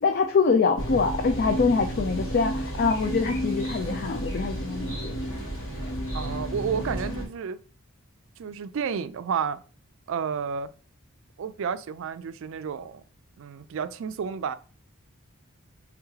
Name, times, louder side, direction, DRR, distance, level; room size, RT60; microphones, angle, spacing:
voice 1, 0.0-5.1, left 4 dB, 50° left, 0.4 m, -24 dB
sound 1, 0.8-7.3, right 1 dB, 75° left, 2.1 m, -31 dB
voice 2, 6.1-7.6 8.4-9.6 10.1-10.7 11.4-13.0 13.4-14.6, right 6 dB, 65° right, 0.4 m, -31 dB
3.5 x 3.4 x 3.1 m
head